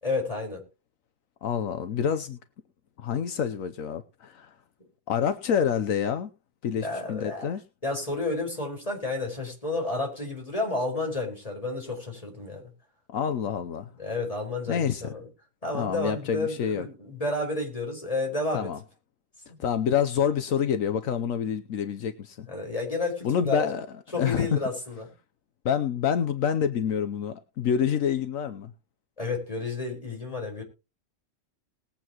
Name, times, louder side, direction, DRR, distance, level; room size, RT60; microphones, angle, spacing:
voice 1, 0.0-0.6 6.8-7.5 7.8-12.7 14.0-15.3 15.6-18.7 22.5-23.7 24.1-25.1 29.2-30.6, left 2 dB, 25° left, 5.0 m, -31 dB
voice 2, 1.4-2.4 3.0-4.6 5.1-6.3 6.6-7.6 13.1-13.9 14.7-15.1 15.7-16.9 18.5-18.8 19.6-22.5 23.2-23.9 24.2-24.6 25.6-28.7, left 8 dB, 80° left, 1.2 m, -27 dB
20.5 x 8.7 x 3.0 m
omnidirectional pair, 1.4 m